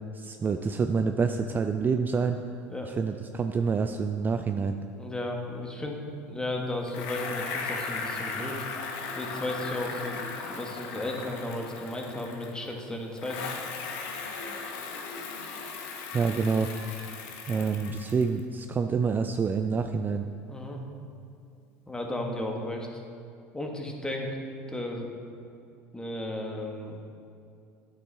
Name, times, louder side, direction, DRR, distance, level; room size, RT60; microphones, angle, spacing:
voice 1, 0.1-2.4 2.9-4.8 16.1-16.7 17.5-20.2, right 5 dB, 25° right, 7 dB, 0.4 m, -27 dB
voice 2, 5.0-6.0 6.3-8.7 9.1-13.5 17.5-17.6 20.5-20.8 21.9-23.0 23.5-24.4 24.7-25.1 25.9-27.0, left 1 dB, 10° left, 1 dB, 1.4 m, -34 dB
Bicycle, 6.9-12.7 13.2-18.4, left 4 dB, 70° left, 1.0 m, -37 dB
9.9 x 7.0 x 3.4 m, 2.6 s
hypercardioid pair, 80°, 7 cm